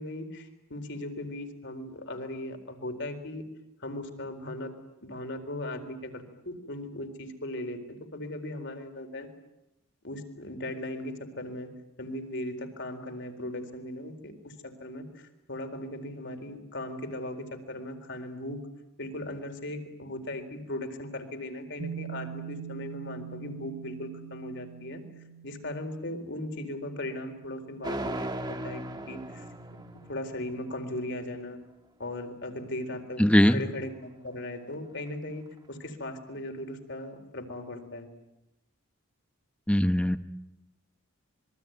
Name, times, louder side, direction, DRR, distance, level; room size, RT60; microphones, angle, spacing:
voice 1, 0.0-3.4 3.8-4.7 5.0-9.3 10.0-11.7 12.0-18.6 19.0-25.0 25.4-29.4 30.1-31.6 32.0-38.1, left 1 dB, 55° left, 6 dB, 4.1 m, -38 dB
sound 1, 21.8-31.3, right 9 dB, 85° right, 1.2 m, -45 dB
sound 2, 27.8-30.8, right 1 dB, 20° right, 1.6 m, -37 dB
voice 2, 33.2-33.6 39.7-40.2, equal, 5° left, 11 dB, 0.9 m, -20 dB
26.5 x 23.0 x 9.3 m, 0.91 s
head